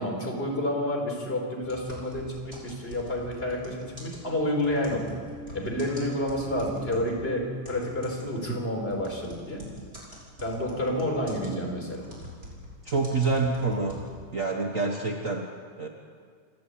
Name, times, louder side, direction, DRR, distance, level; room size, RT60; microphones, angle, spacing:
voice 1, 0.0-5.0 5.5-9.6 10.4-12.1, left 1 dB, 15° left, -1 dB, 4.3 m, -29 dB
sound 1, 1.6-7.2 7.6-14.3, equal, 20° right, 5.9 m, -44 dB
voice 2, 12.8-14.1 14.3-15.9, right 3 dB, 60° right, 1 dB, 0.8 m, -27 dB
28.5 x 12.0 x 8.6 m, 2.1 s
omnidirectional pair, 3.7 m